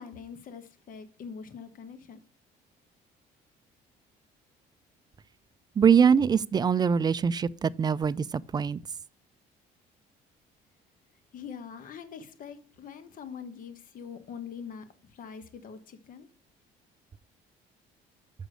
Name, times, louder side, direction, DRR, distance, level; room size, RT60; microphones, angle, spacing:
voice 1, 0.0-2.2 11.3-16.3, left 6 dB, 55° left, 1.2 m, -43 dB
voice 2, 5.8-8.8, right 7 dB, 25° right, 0.4 m, -23 dB
6.6 x 6.1 x 6.3 m
cardioid pair, 110°, 17 cm